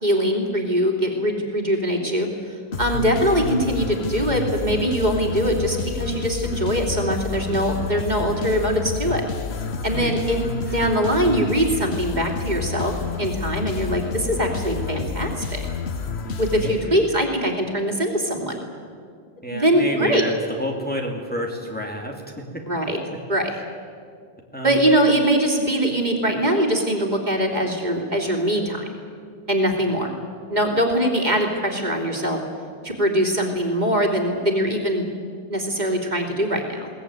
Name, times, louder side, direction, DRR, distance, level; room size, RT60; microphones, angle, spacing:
voice 1, 0.0-2.3 2.8-9.2 9.8-15.6 16.4-18.6 19.5-20.2 22.7-23.0 23.3-23.5 24.6-28.9 29.5-30.1 30.5-32.4 32.8-35.1 35.5-36.9, equal, 45° right, 1 dB, 3.1 m, -22 dB
sound 1, 2.7-17.3, left 5 dB, 85° left, 1.4 m, -29 dB
voice 2, 16.2-17.2 19.4-22.7 24.5-24.9, equal, 10° left, 0 dB, 2.5 m, -30 dB
22.0 x 18.0 x 9.6 m, 2.2 s
omnidirectional pair, 1.1 m